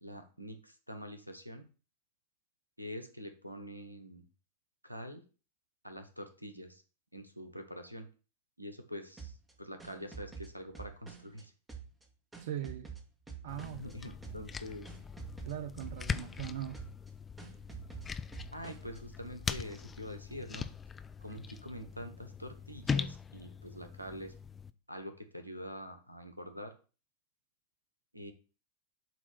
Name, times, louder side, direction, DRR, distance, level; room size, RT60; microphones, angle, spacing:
voice 1, 0.0-1.7 2.8-4.2 4.8-5.2 5.8-6.8 7.1-8.1 8.6-11.5 13.5-14.9 18.5-20.7 21.2-24.3 24.9-26.7 28.1-28.3, equal, 90° right, 1.0 m, -45 dB
sound 1, 9.2-11.4 11.7-13.9 14.2-14.6 14.9-16.5 16.7-17.1 17.4-19.0, right 6 dB, 10° right, 1.6 m, -47 dB
voice 2, 12.4-12.9 13.4-13.8 15.5-16.8, right 11 dB, 55° right, 0.4 m, -40 dB
sound 2, 13.5-24.7, left 5 dB, 15° left, 0.4 m, -41 dB
7.5 x 3.0 x 5.9 m
figure-of-eight pair, 90°, 0 cm